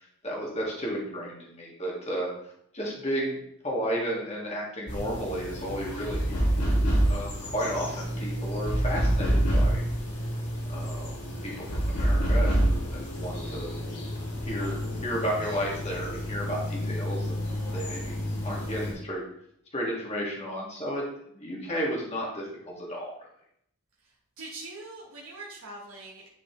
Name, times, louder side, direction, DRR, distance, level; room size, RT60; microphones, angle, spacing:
voice 1, 0.0-2.3 2.7-3.4 3.6-9.8 10.7-11.2 11.4-13.7 14.4-17.4 17.7-19.2 19.7-21.0 21.3-23.1, equal, 30° left, -3 dB, 1.8 m, -33 dB
sound 1, 4.9-18.9, equal, 90° left, 2.5 m, -28 dB
voice 2, 24.4-26.3, right 2 dB, 65° right, -4 dB, 1.1 m, -42 dB
9.9 x 4.2 x 3.0 m, 0.71 s
head